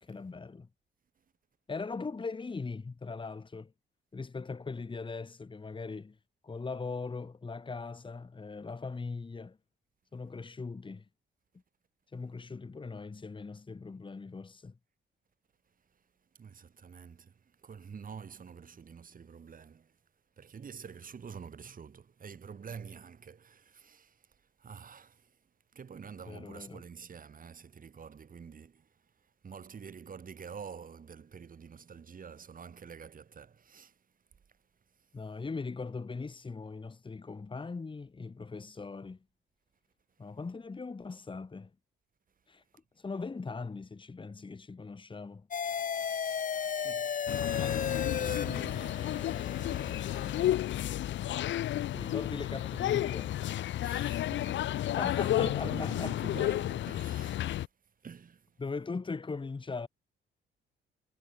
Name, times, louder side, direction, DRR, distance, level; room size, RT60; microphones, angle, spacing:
voice 1, 0.0-0.7 1.7-3.7 4.1-6.2 6.4-9.6 10.1-11.0 12.1-14.7 26.3-26.8 35.1-39.2 40.2-41.7 42.5-42.6 43.0-45.5 51.9-53.4 55.0-56.2 58.6-59.9, left 4 dB, 25° left, 2.0 m, -40 dB
voice 2, 16.4-20.0 20.4-25.4 25.7-29.0 29.4-34.0 46.6-47.2 47.6-50.6 53.8-57.5 58.0-58.5, right 6 dB, 45° right, 5.8 m, -48 dB
sound 1, 45.5-50.5, left 7 dB, 40° left, 1.4 m, -35 dB
sound 2, 47.3-57.7, left 13 dB, 70° left, 0.8 m, -32 dB
cardioid pair, 90°, 20 cm